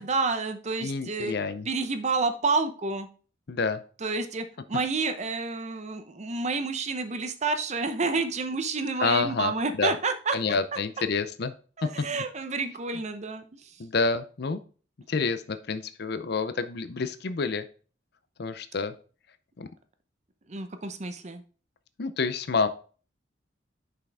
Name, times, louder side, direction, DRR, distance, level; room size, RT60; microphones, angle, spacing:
voice 1, 0.0-1.3 1.7-3.1 4.0-10.4 11.8-13.8 20.5-21.4, right 4 dB, 40° right, 8 dB, 0.7 m, -29 dB
voice 2, 0.8-1.7 3.5-3.8 9.0-9.5 9.8-9.9 10.3-11.5 11.8-12.1 13.8-14.6 15.1-17.7 18.4-18.9 19.6-19.7 22.0-22.7, left 4 dB, 60° left, 12 dB, 0.6 m, -28 dB
6.1 x 5.7 x 3.4 m, 0.38 s
head